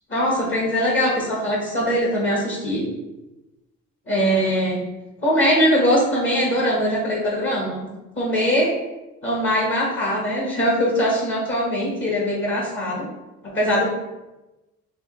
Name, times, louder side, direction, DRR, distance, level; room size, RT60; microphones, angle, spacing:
voice 1, 0.1-2.9 4.1-4.8 5.2-7.9 8.2-8.7 9.2-13.0 13.4-13.9, equal, 40° left, -4 dB, 1.5 m, -21 dB
4.8 x 3.1 x 3.3 m, 1.0 s
cardioid pair, 90°, 30 cm